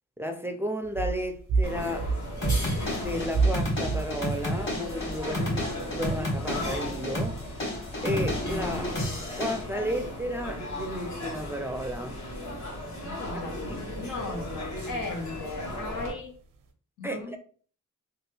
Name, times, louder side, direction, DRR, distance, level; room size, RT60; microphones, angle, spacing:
voice 1, 0.2-2.1 2.9-7.7 8.0-9.0 9.4-12.2 13.3-13.8 17.0-17.4, equal, 10° right, 0.4 m, -33 dB
sound 1, 0.8-16.7, right 4 dB, 90° right, 0.6 m, -35 dB
sound 2, 1.6-16.1, left 1 dB, 60° left, 1.2 m, -36 dB
sound 3, 2.4-9.6, equal, 40° left, 1.5 m, -32 dB
voice 2, 13.2-16.3 17.0-17.4, left 3 dB, 85° left, 0.8 m, -37 dB
2.8 x 2.3 x 3.2 m
cardioid pair, 70°, 32 cm